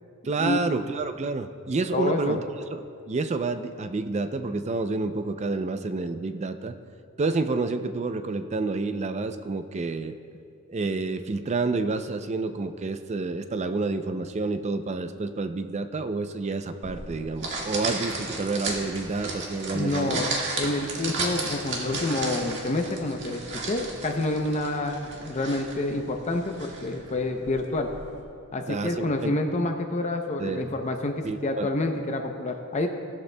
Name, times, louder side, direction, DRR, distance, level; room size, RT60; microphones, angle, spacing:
voice 1, 0.2-2.4 2.7-6.7 7.2-10.1 10.7-20.3 28.7-29.3 30.4-30.7 31.2-31.7, right 3 dB, 30° right, 9 dB, 0.4 m, -29 dB
voice 2, 1.9-2.4 19.7-27.9 28.5-32.9, left 2 dB, 30° left, 4 dB, 0.6 m, -28 dB
sound 1, 16.8-28.2, right 3 dB, 55° right, 1.7 m, -34 dB
17.5 x 11.5 x 2.2 m, 2.5 s
head